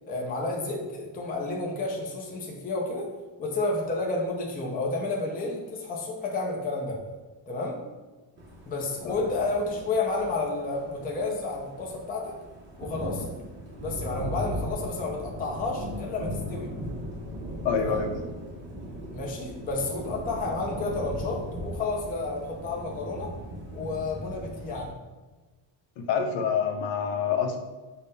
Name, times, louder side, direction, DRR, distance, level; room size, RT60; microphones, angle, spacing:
voice 1, 0.1-3.1 3.4-7.0 7.5-7.8 8.7-12.3 12.8-13.3 13.8-16.7 17.8-18.0 19.1-23.3 23.7-24.9, left 3 dB, 20° left, -1 dB, 0.5 m, -31 dB
sound 1, 8.4-24.9, equal, 25° right, 0.7 m, -38 dB
voice 2, 17.6-18.2 26.0-27.6, left 6 dB, 70° left, 4 dB, 0.7 m, -27 dB
5.3 x 2.2 x 4.0 m, 1.3 s
cardioid pair, 180°, 46 cm